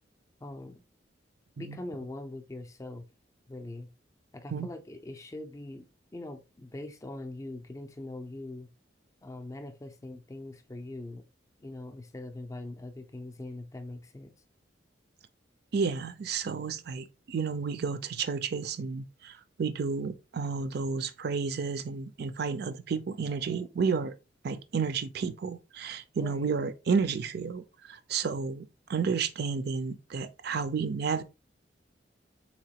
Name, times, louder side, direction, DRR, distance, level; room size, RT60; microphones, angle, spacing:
voice 1, 0.4-0.8 1.6-3.1 3.5-3.9 4.3-8.7 9.2-11.2 11.6-14.3 26.1-26.5, left 2 dB, 20° left, 0.4 m, -42 dB
voice 2, 15.7-24.1 24.4-31.2, right 5 dB, 60° right, 0.4 m, -31 dB
4.0 x 2.9 x 2.8 m
head